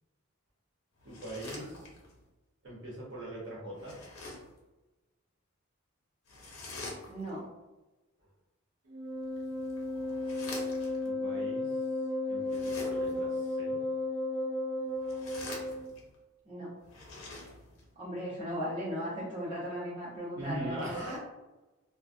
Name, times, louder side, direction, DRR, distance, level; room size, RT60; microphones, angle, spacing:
sound 1, 1.0-2.2 3.7-4.6 6.3-7.4 9.2-11.1 12.4-13.3 14.9-16.1 16.8-17.9, left 2 dB, 80° left, 0.6 m, -46 dB
voice 1, 1.0-1.9 2.6-4.0 11.0-11.8 12.2-13.8 20.4-21.2, right 1 dB, 55° right, -5 dB, 0.9 m, -41 dB
voice 2, 7.1-7.4 16.5-16.7 18.0-21.2, equal, 25° right, -8 dB, 0.6 m, -37 dB
Wind instrument woodwind instrument, 8.9-15.9, left 2 dB, 85° right, 0.5 m, -34 dB
2.3 x 2.2 x 2.5 m, 1.1 s
head